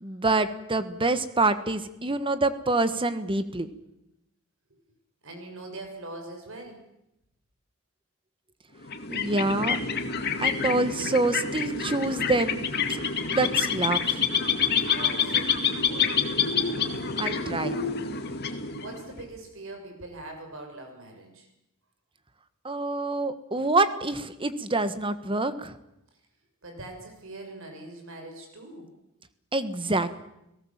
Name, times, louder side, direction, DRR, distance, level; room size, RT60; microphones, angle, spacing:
voice 1, 0.0-3.7 9.1-9.8 10.4-12.6 12.9-13.0 13.3-14.2 17.2-17.8 22.6-25.7 29.5-30.1, right 2 dB, 25° right, 11 dB, 1.5 m, -26 dB
voice 2, 5.2-6.8 14.9-16.3 18.8-21.5 26.6-28.9, right 2 dB, 65° right, 4 dB, 6.6 m, -42 dB
sound 1, 8.8-19.2, left 6 dB, 50° left, 2.3 m, -27 dB
30.0 x 18.0 x 7.4 m, 0.87 s
head